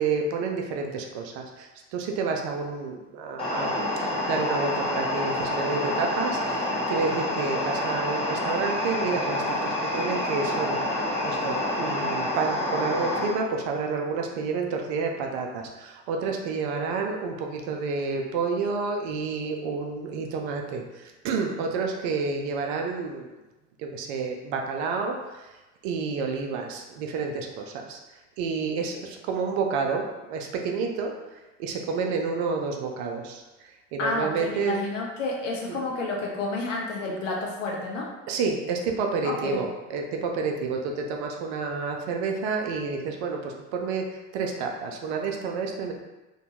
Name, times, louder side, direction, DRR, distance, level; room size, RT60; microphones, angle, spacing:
voice 1, 0.0-3.7 4.0-23.3 23.8-25.5 25.8-28.0 28.4-30.0 30.3-33.4 33.9-34.8 35.7-35.9 38.3-44.0 44.3-45.9, right 4 dB, 60° right, 2 dB, 0.5 m, -29 dB
sound 1, 3.4-13.3, left 1 dB, 15° left, 1.1 m, -28 dB
voice 2, 34.0-38.1 39.2-39.6, left 2 dB, 80° left, -1 dB, 0.6 m, -30 dB
2.7 x 2.2 x 2.8 m, 1.1 s
figure-of-eight pair, 60°, 38 cm